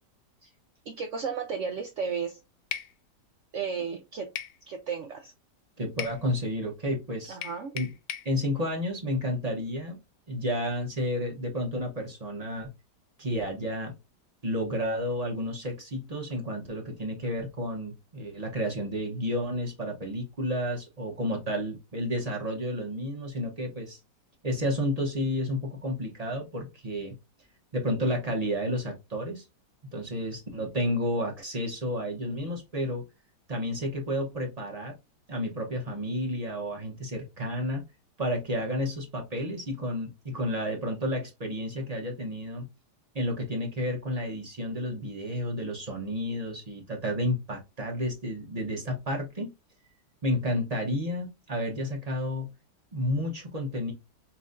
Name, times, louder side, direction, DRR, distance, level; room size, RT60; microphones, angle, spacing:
voice 1, 0.9-2.4 3.5-4.3 4.7-5.3 7.3-7.7, right 6 dB, 75° right, 6 dB, 0.7 m, -33 dB
sound 1, 2.7-2.9 4.4-4.6 6.0-6.2 7.4-8.3, left 10 dB, 70° left, 1.0 m, -36 dB
voice 2, 5.8-7.4 7.7-7.9 8.2-10.0 10.3-12.7 13.2-13.9 14.4-24.0 24.4-27.1 27.7-29.5 29.9-33.0 33.5-35.0 35.3-37.8 38.2-42.7 43.1-49.5 50.2-52.5 52.9-53.9, equal, 40° right, 0 dB, 0.6 m, -31 dB
5.6 x 2.6 x 2.5 m, 0.24 s
omnidirectional pair, 1.8 m